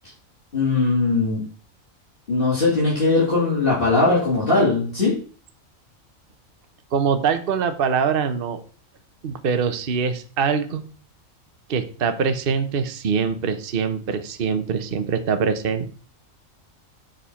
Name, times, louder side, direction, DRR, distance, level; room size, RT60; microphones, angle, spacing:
voice 1, 0.5-1.4 2.3-5.2, left 3 dB, 40° left, -7 dB, 2.9 m, -20 dB
voice 2, 6.9-8.6 9.2-10.8 11.7-15.9, right 6 dB, 45° right, 9 dB, 1.0 m, -23 dB
6.6 x 5.2 x 5.6 m, 0.40 s
omnidirectional pair, 1.4 m